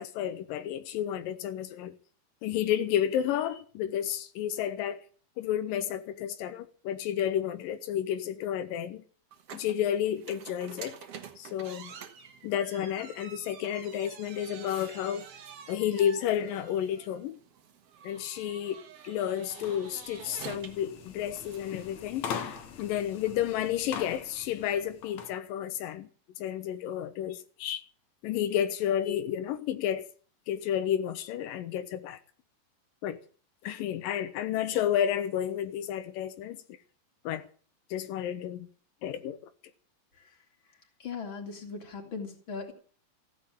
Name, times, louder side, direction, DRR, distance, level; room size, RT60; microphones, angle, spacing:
voice 1, 0.0-2.0 2.4-5.0 5.4-9.0 9.5-11.0 11.4-11.9 12.4-15.3 15.7-17.4 18.0-22.3 22.8-26.1 26.4-27.8 28.2-30.1 30.5-32.2 33.0-33.2 33.6-36.6 37.3-37.5 37.9-38.7 39.0-39.4, left 10 dB, 90° left, 2.7 m, -31 dB
sound 1, 9.3-22.6, right 7 dB, 50° right, 2.3 m, -48 dB
sound 2, 19.5-25.4, left 7 dB, 60° left, 2.6 m, -42 dB
voice 2, 41.0-42.7, left 5 dB, 35° left, 3.7 m, -38 dB
15.5 x 9.9 x 8.6 m
omnidirectional pair, 3.9 m